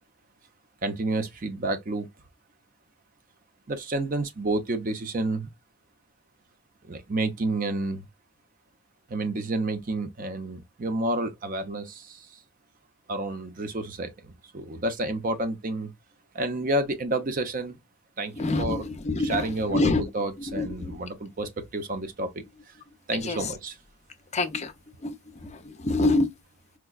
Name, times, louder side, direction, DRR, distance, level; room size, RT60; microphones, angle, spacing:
voice 1, 0.8-2.1 3.7-5.5 6.8-8.1 9.1-12.3 13.1-15.9 16.3-17.8 18.2-18.8 19.2-22.7 23.1-23.8, right 2 dB, 35° right, 0.6 m, -30 dB
voice 2, 18.4-20.0 20.4-21.0 23.2-23.5 24.3-24.7 25.0-25.1 25.4-26.3, left 2 dB, 30° left, 0.5 m, -26 dB
4.6 x 2.2 x 2.3 m
head